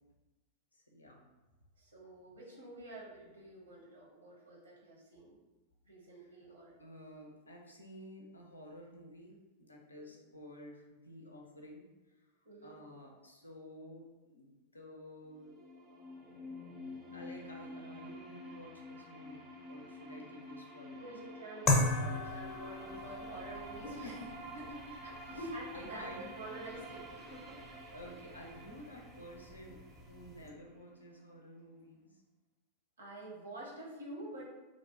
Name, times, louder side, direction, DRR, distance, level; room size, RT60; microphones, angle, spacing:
voice 1, 0.7-1.2 6.1-6.4 6.8-11.8 12.6-15.6 17.1-21.1 24.0-24.8 25.3-25.5 25.7-26.3 27.9-32.2, left 1 dB, 80° left, 0 dB, 0.4 m, -52 dB
voice 2, 1.8-5.4 5.8-6.7 9.9-10.2 12.4-12.7 20.9-24.1 25.0-27.7 33.0-34.4, right 1 dB, 70° right, -3 dB, 0.7 m, -48 dB
sound 1, 15.3-31.2, equal, 25° right, 0.4 m, -50 dB
sound 2, 21.7-30.5, left 2 dB, 25° left, 0.5 m, -38 dB
2.5 x 2.0 x 2.7 m, 1.2 s
figure-of-eight pair, 90°, 0 cm